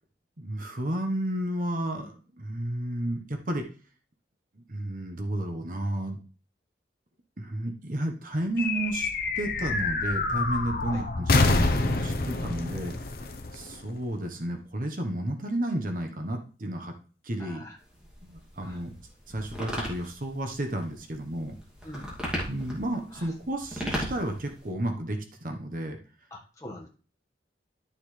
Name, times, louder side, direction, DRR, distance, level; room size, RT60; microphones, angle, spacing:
voice 1, 0.4-3.7 4.7-6.2 7.4-9.1 9.3-12.1 12.4-12.9 13.5-16.9 17.2-17.7 18.2-18.9 19.3-21.5 22.5-26.0, right 1 dB, 45° right, 4 dB, 1.2 m, -32 dB
sound 1, 8.6-14.3, left 3 dB, 55° left, 0.9 m, -27 dB
voice 2, 12.1-12.5 17.4-17.8 18.6-18.8 21.8-22.1 23.1-23.3 26.3-26.9, left 1 dB, 15° left, -1 dB, 1.6 m, -43 dB
Lerenstoel kraakt, 17.8-24.7, equal, 5° right, 2.5 m, -37 dB
11.5 x 6.7 x 3.3 m, 0.38 s
head